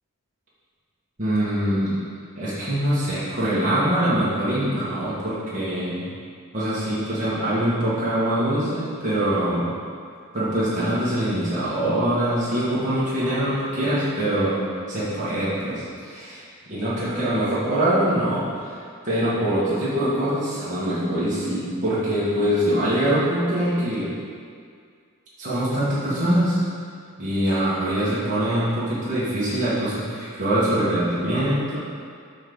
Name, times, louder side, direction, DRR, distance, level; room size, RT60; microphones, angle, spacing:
voice 1, 1.2-2.0 2.4-6.1 6.5-9.7 10.3-14.6 14.9-24.1 25.4-26.6 27.2-31.8, right 1 dB, 35° right, -11 dB, 1.8 m, -23 dB
6.1 x 3.9 x 6.1 m, 2.2 s
head